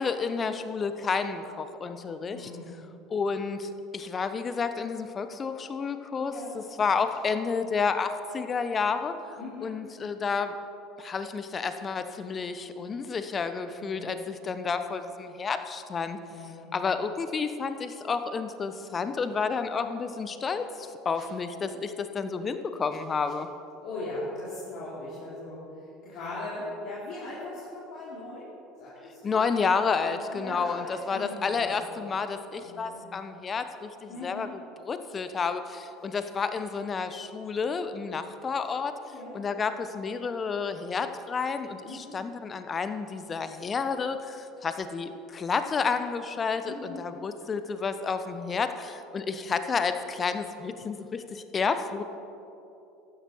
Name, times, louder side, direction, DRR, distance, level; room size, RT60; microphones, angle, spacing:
voice 1, 0.0-2.5 3.1-9.1 9.6-10.6 11.0-16.2 16.7-23.5 29.2-34.5 34.9-38.9 39.3-52.0, left 5 dB, 30° left, 10 dB, 0.9 m, -30 dB
voice 2, 2.2-2.8 6.2-6.5 9.4-9.7 13.7-14.1 16.3-16.7 23.8-28.5 28.8-29.5 30.1-31.9 32.5-33.0 34.1-34.5 39.1-39.4 41.8-42.2 46.6-47.0, left 2 dB, 55° left, -8 dB, 3.4 m, -39 dB
14.5 x 11.0 x 4.6 m, 2.9 s
hypercardioid pair, 70°, 0 cm